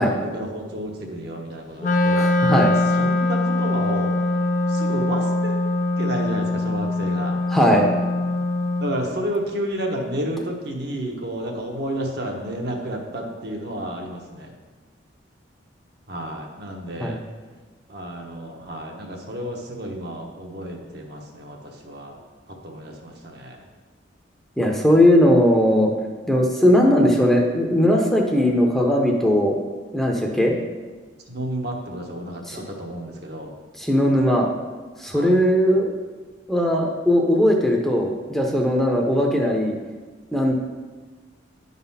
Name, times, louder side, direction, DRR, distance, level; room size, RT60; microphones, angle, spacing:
voice 1, 0.0-2.3 3.0-4.2 4.7-5.6 6.0-7.4 8.8-14.6 16.1-17.2 17.9-21.6 21.8-22.2 22.6-23.6 31.3-33.5 35.1-35.3, right 1 dB, 60° right, 1 dB, 1.2 m, -31 dB
Wind instrument woodwind instrument, 1.8-9.0, left 2 dB, 40° left, 0.5 m, -22 dB
voice 2, 2.1-2.7 7.5-7.9 17.0-17.2 24.6-25.9 26.3-29.6 29.9-30.6 32.5-32.6 33.8-34.5 35.0-35.9 36.5-39.7 40.3-40.5, equal, ahead, 0 dB, 0.7 m, -18 dB
10.0 x 4.1 x 5.6 m, 1.3 s
head